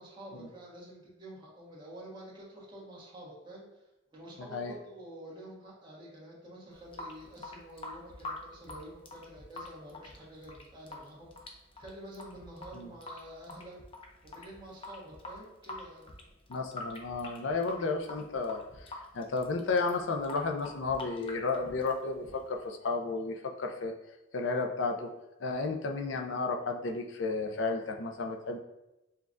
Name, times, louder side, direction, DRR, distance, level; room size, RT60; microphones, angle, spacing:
voice 1, 0.0-3.8 4.1-13.8 14.2-16.1, right 1 dB, 25° right, -6 dB, 1.3 m, -48 dB
Water tap faucet / Sink (filling or washing) / Drip, 6.7-22.7, left 2 dB, 30° left, 0.5 m, -46 dB
voice 2, 16.5-23.9 24.3-25.1 25.4-28.6, left 3 dB, 75° left, 3 dB, 0.5 m, -33 dB
6.7 x 2.3 x 2.5 m, 0.94 s
head